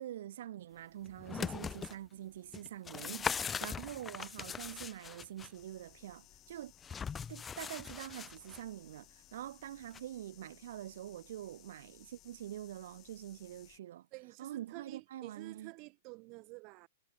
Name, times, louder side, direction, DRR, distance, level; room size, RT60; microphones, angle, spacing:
voice 1, 0.0-6.7 7.3-14.1 14.4-15.7, right 12 dB, 60° right, 1.1 m, -45 dB
sound 1, 1.1-2.0 2.5-5.5 6.8-8.6 9.9-10.0, left 6 dB, 15° left, 0.7 m, -40 dB
sound 2, 5.5-13.8, left 16 dB, 35° left, 2.7 m, -62 dB
voice 2, 14.1-16.9, right 27 dB, 40° right, 1.1 m, -50 dB
hypercardioid pair, 110°, 0 cm